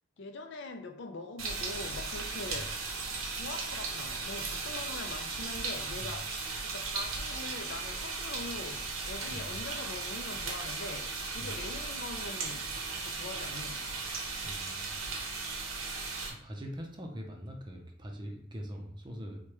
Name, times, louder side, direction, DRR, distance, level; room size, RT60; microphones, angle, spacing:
voice 1, 0.2-2.8 3.3-14.0, left 3 dB, 55° left, 6 dB, 0.4 m, -43 dB
sound 1, 1.4-16.3, right 4 dB, 70° right, 0.8 m, -37 dB
voice 2, 14.4-15.1 16.4-19.4, equal, 20° right, 2 dB, 0.5 m, -43 dB
4.8 x 2.2 x 3.0 m, 0.64 s
head